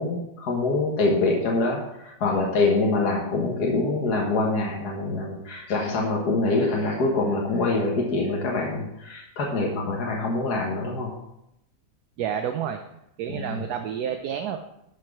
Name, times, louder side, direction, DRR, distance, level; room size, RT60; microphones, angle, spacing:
voice 1, 0.0-11.1 13.3-13.6, left 3 dB, 70° left, -1 dB, 2.0 m, -25 dB
voice 2, 12.2-12.8 13.2-14.6, right 8 dB, 75° right, 6 dB, 1.2 m, -29 dB
12.0 x 4.6 x 6.1 m, 0.83 s
omnidirectional pair, 1.8 m